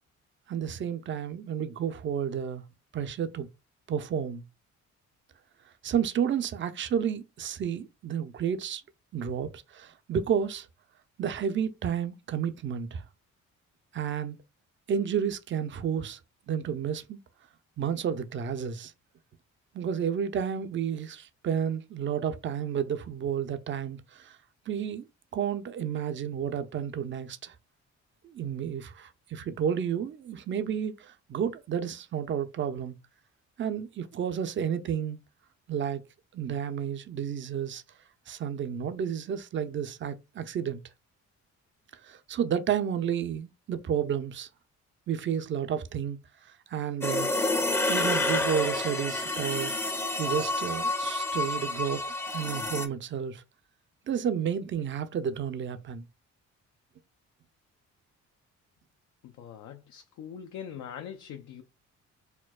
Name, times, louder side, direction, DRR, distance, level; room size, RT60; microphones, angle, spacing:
voice 1, 0.5-2.6 2.9-3.5 3.9-4.4 5.8-8.8 9.1-10.7 11.2-13.0 13.9-14.4 14.9-16.2 16.5-17.2 17.8-18.9 19.7-24.4 24.7-25.1 25.3-27.5 28.2-32.9 33.6-35.2 35.7-36.0 36.3-37.8 38.3-40.8 42.0-44.5 45.1-46.2 46.7-47.3 47.9-49.7 50.2-52.0 52.3-53.4 54.1-56.0, right 8 dB, 40° right, 0.5 m, -31 dB
sound 1, 47.0-52.9, left 2 dB, 10° left, 0.6 m, -29 dB
voice 2, 59.2-61.6, left 8 dB, 75° left, 0.5 m, -42 dB
4.3 x 2.2 x 2.3 m
cardioid pair, 90°, 30 cm